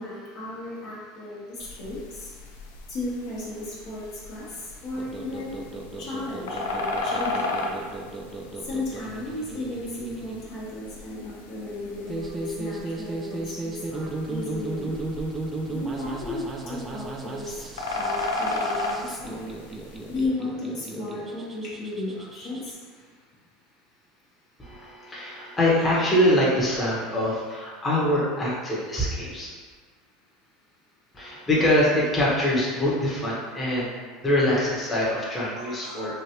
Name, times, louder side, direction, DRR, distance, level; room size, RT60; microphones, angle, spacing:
voice 1, 0.0-2.3 2.9-4.5 4.8-5.6 6.0-7.8 8.6-15.0 15.7-17.6 18.0-19.5 20.1-22.8 35.5-36.2, left 2 dB, 60° left, -6 dB, 1.0 m, -34 dB
sound 1, 1.6-20.3, left 2 dB, 90° left, 0.4 m, -35 dB
sound 2, 5.0-22.7, right 2 dB, 20° right, 0.4 m, -36 dB
voice 2, 24.6-29.5 31.1-33.9 34.2-36.1, left 1 dB, 15° left, -7 dB, 0.9 m, -24 dB
3.1 x 2.5 x 2.9 m, 1.5 s
supercardioid pair, 100°, 0 cm